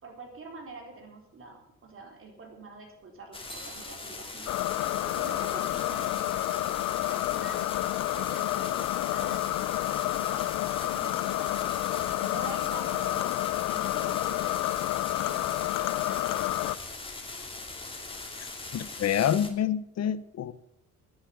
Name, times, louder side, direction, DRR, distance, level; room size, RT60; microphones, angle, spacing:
voice 1, 0.0-4.5 5.0-9.4 9.9-13.3 13.6-14.5 15.0-16.4, right 3 dB, 45° right, 1 dB, 4.2 m, -46 dB
sound 1, 3.3-19.5, left 3 dB, 20° left, 2.9 m, -41 dB
sound 2, 3.5-5.4, right 4 dB, ahead, 3.7 m, -52 dB
sound 3, 4.5-16.8, left 16 dB, 85° left, 0.6 m, -29 dB
voice 2, 18.4-20.5, left 9 dB, 60° left, 15 dB, 0.9 m, -28 dB
10.5 x 8.4 x 9.8 m, 0.81 s
cardioid pair, 90°, 30 cm